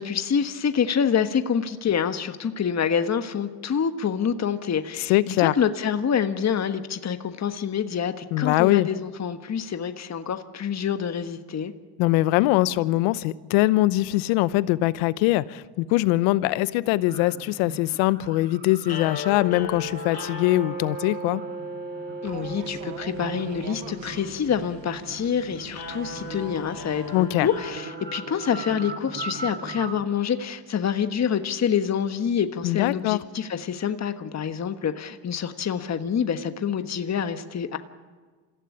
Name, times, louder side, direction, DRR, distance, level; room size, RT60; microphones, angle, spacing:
voice 1, 0.0-11.7 22.2-37.8, left 7 dB, 35° left, 9 dB, 1.4 m, -27 dB
voice 2, 5.1-5.5 8.3-8.9 12.0-21.4 27.1-27.5 32.6-33.2, left 17 dB, 75° left, 17 dB, 0.9 m, -22 dB
sound 1, 17.1-30.0, right 4 dB, 25° right, 2.1 m, -41 dB
sound 2, 18.8-29.1, left 1 dB, 55° left, 5.3 m, -37 dB
sound 3, 22.2-27.8, right 13 dB, 90° right, 1.1 m, -45 dB
26.5 x 16.0 x 9.8 m, 1.4 s
supercardioid pair, 75°, 47 cm